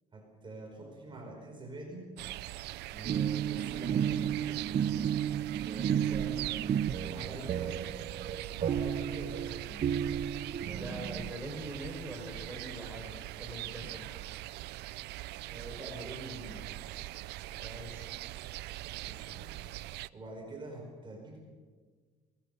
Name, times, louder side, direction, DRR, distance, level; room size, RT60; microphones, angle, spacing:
voice 1, 0.1-2.1 2.9-4.6 5.5-7.9 8.5-9.9 10.7-11.0 15.5-16.7 19.0-19.5 20.1-21.4, right 2 dB, 30° right, 1 dB, 5.3 m, -45 dB
sound 1, 2.2-20.1, right 17 dB, 80° right, 0.5 m, -42 dB
sound 2, 3.0-11.3, right 9 dB, 45° right, 0.8 m, -32 dB
voice 2, 10.7-14.1 17.5-18.1, right 1 dB, 10° right, 0 dB, 5.7 m, -43 dB
22.5 x 20.5 x 7.0 m, 1.5 s
cardioid pair, 110°, 17 cm